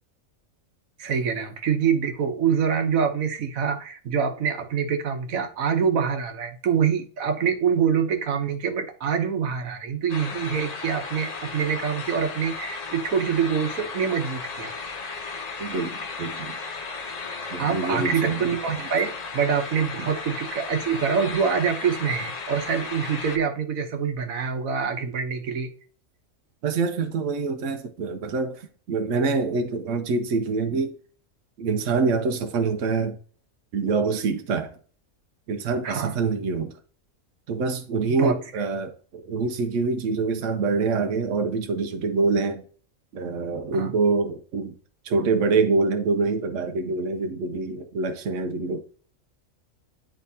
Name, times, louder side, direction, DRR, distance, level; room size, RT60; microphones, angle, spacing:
voice 1, 1.0-14.7 17.6-25.7 35.8-36.1 38.2-38.3 43.7-43.9, right 7 dB, 85° right, 1.3 m, -25 dB
sound 1, 10.1-23.4, left 4 dB, 40° left, 0.6 m, -35 dB
voice 2, 15.6-16.6 17.5-18.4 20.0-20.1 26.6-30.9 31.6-33.2 33.7-34.8 35.5-36.7 37.5-42.6 43.1-44.8 45.0-48.8, right 4 dB, 70° right, 1.0 m, -25 dB
9.9 x 3.5 x 2.7 m
omnidirectional pair, 1.4 m